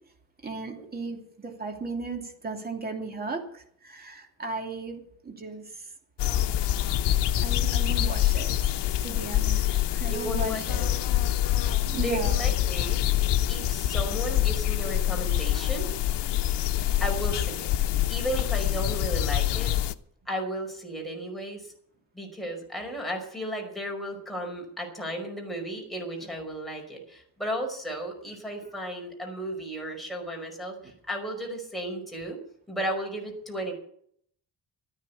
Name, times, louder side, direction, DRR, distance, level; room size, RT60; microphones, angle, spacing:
voice 1, 0.4-5.9 7.4-8.7 9.0-10.9 11.8-12.5, right 3 dB, 20° right, 3 dB, 2.8 m, -36 dB
sound 1, 6.2-19.9, left 12 dB, 80° left, 0.9 m, -26 dB
voice 2, 10.0-11.0 11.6-13.1 13.5-15.9 17.0-17.7 18.1-19.8 20.3-21.7 22.1-32.4 32.7-33.7, right 1 dB, ahead, 0 dB, 5.2 m, -34 dB
13.5 x 10.0 x 8.3 m, 0.63 s
cardioid pair, 155°, 41 cm